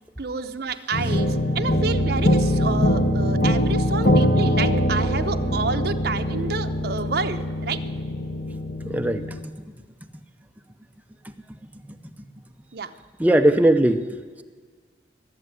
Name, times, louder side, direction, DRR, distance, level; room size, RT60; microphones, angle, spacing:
voice 1, 0.2-7.8 12.7-12.9, right 4 dB, 60° right, 6 dB, 0.9 m, -29 dB
sound 1, 0.9-9.4, left 1 dB, 50° left, 1.3 m, -22 dB
voice 2, 8.9-9.4 11.2-11.7 12.0-12.1 13.2-14.4, right 1 dB, 10° right, 6 dB, 0.8 m, -21 dB
20.0 x 7.3 x 9.7 m, 1.5 s
head